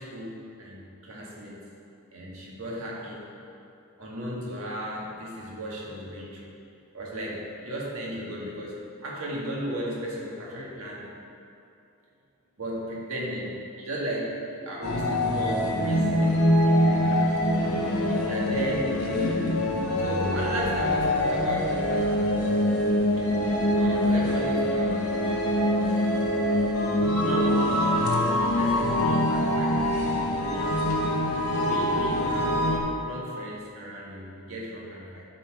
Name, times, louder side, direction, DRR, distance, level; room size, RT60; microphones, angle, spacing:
voice 1, 0.0-1.6 2.1-3.3 4.0-6.5 6.9-11.1 12.6-17.4 18.3-19.4 20.0-22.2 23.7-25.2 27.1-27.7 28.5-29.9 30.5-30.8 31.6-35.3, right 1 dB, 75° right, -4 dB, 1.8 m, -35 dB
sound 1, 14.8-32.8, left 1 dB, 90° left, 1.0 m, -24 dB
11.5 x 4.2 x 4.8 m, 2.6 s
head